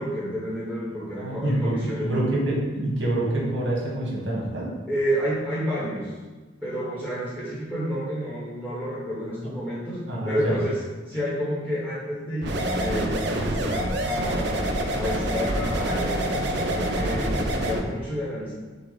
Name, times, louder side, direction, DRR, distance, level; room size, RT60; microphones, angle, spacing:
voice 1, 0.0-2.3 4.9-6.2 6.6-10.0 10.3-10.8 11.1-18.5, equal, 5° right, -9 dB, 1.0 m, -30 dB
voice 2, 1.2-4.7 9.4-9.5 10.1-10.6, right 1 dB, 80° right, -3 dB, 1.3 m, -26 dB
sound 1, 12.4-17.8, right 1 dB, 65° right, 0.5 m, -26 dB
5.7 x 2.0 x 3.9 m, 1.3 s
head